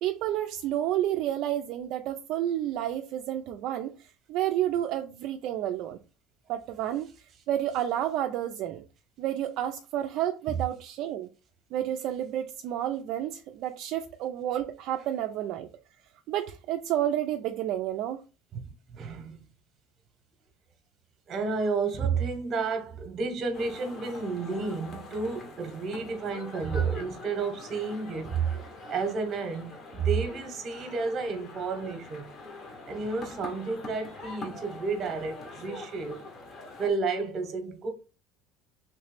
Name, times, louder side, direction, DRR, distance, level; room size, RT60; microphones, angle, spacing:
voice 1, 0.0-6.0 6.5-7.1 7.5-8.8 9.2-11.3 11.7-15.7 16.3-18.2, right 12 dB, 55° right, 0.3 m, -30 dB
voice 2, 18.5-19.4 21.3-28.4 28.9-32.3 32.9-36.2 36.8-37.9, right 4 dB, 35° right, 0.9 m, -31 dB
sound 1, 23.5-36.9, left 2 dB, 35° left, 0.9 m, -44 dB
3.2 x 3.0 x 3.2 m
cardioid pair, 145°, 0 cm